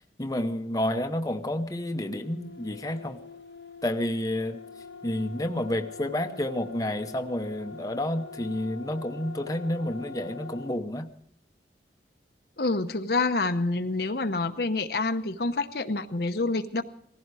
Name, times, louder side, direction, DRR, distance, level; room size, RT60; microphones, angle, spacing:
voice 1, 0.2-3.2 3.8-4.6 5.0-11.1, left 1 dB, 20° left, 5 dB, 0.8 m, -30 dB
sound 1, 1.8-10.8, left 4 dB, 85° left, 1.1 m, -44 dB
voice 2, 12.6-16.8, left 3 dB, 60° left, 8 dB, 0.8 m, -27 dB
18.5 x 15.5 x 4.8 m, 0.66 s
head